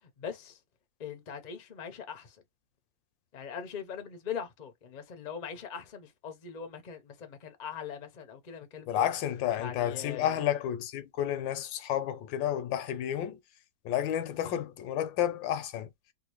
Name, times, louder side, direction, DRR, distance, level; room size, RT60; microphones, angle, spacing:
voice 1, 0.2-0.6 1.0-2.4 3.3-9.1 9.6-10.4 14.4-14.6, left 7 dB, 45° left, 0.5 m, -41 dB
voice 2, 8.9-13.4 13.8-15.9, left 11 dB, 80° left, 1.4 m, -31 dB
3.7 x 2.3 x 3.0 m
omnidirectional pair, 2.0 m